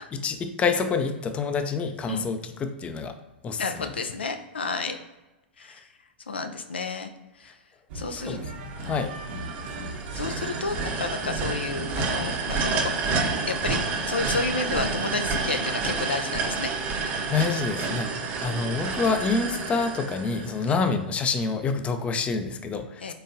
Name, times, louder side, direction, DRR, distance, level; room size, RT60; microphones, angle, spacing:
voice 1, 0.2-3.2 3.4-3.9 8.1-9.1 17.3-18.1 18.4-23.1, left 4 dB, 20° left, 8 dB, 0.4 m, -27 dB
voice 2, 3.6-5.0 5.6-5.9 6.3-7.6 7.9-8.4 10.1-13.0 13.5-16.7 17.0-17.2 20.7-20.8 23.0-23.1, left 4 dB, 85° left, 7 dB, 0.4 m, -31 dB
sound 1, 7.9-13.8, right 2 dB, 60° right, 1.1 m, -38 dB
sound 2, 8.8-20.9, right 4 dB, 35° right, 0.7 m, -29 dB
3.8 x 3.5 x 2.7 m, 1.0 s
hypercardioid pair, 105°, 6 cm